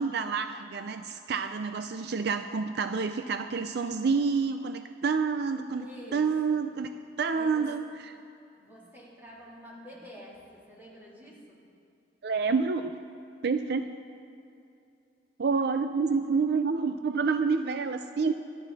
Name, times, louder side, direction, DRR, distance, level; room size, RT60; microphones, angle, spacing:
voice 1, 0.0-5.9 6.1-6.9 7.2-8.2 12.2-12.9 13.4-13.9 15.4-18.3, right 5 dB, 65° right, 8 dB, 0.5 m, -28 dB
voice 2, 5.8-6.7 7.2-7.7 8.5-11.6, equal, 10° right, -6 dB, 3.3 m, -48 dB
25.5 x 9.2 x 4.1 m, 2.6 s
head